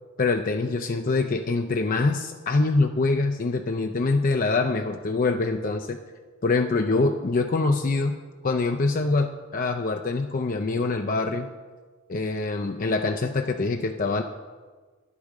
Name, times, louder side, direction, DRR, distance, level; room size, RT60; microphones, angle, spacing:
voice 1, 0.2-6.0 6.4-8.2 8.4-11.5 12.1-14.2, left 3 dB, 45° left, 5 dB, 0.5 m, -24 dB
10.0 x 8.4 x 6.4 m, 1.4 s
head